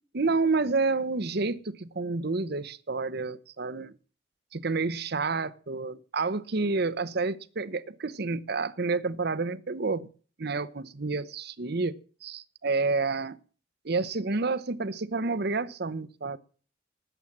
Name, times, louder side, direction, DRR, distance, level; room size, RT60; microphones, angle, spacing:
voice 1, 0.1-4.0 4.5-10.1 10.4-11.9 12.2-13.4 13.8-16.4, right 3 dB, 55° right, 0.8 m, -29 dB
19.0 x 8.1 x 7.3 m
head